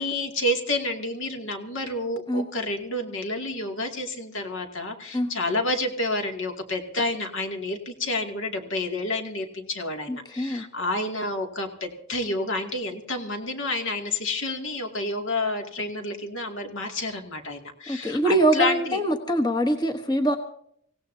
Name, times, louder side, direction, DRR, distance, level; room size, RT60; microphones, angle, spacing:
voice 1, 0.0-19.0, left 2 dB, 65° left, 3 dB, 2.5 m, -29 dB
voice 2, 10.1-10.7 17.9-20.4, right 1 dB, 20° left, 4 dB, 1.1 m, -23 dB
26.5 x 17.0 x 2.8 m, 0.67 s
head